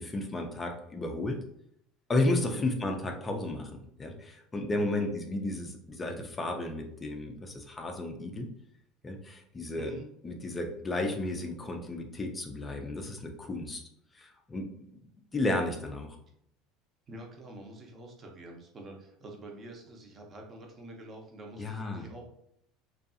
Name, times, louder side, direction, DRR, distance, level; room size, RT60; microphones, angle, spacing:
voice 1, 0.0-1.4 2.1-8.5 9.0-9.9 10.2-13.8 14.1-14.7 15.3-16.2 21.6-22.1, left 2 dB, 20° left, 3 dB, 0.3 m, -33 dB
voice 2, 4.8-5.1 9.8-10.1 16.2-16.3 17.1-22.2, right 1 dB, 30° right, 2 dB, 0.6 m, -46 dB
2.5 x 2.3 x 2.5 m, 0.72 s
supercardioid pair, 135°, 0 cm